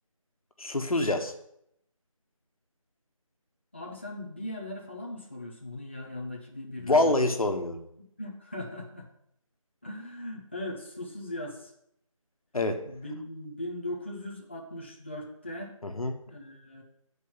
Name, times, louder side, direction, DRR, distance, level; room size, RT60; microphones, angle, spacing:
voice 1, 0.6-1.3 6.8-7.8 12.5-12.8 15.8-16.2, left 2 dB, 80° left, 6 dB, 1.4 m, -26 dB
voice 2, 3.7-7.4 8.2-9.1 9.8-11.7 12.8-15.7 16.3-16.8, left 1 dB, 20° left, -2 dB, 0.8 m, -39 dB
8.5 x 4.7 x 7.3 m, 0.73 s
figure-of-eight pair, 180°, 18 cm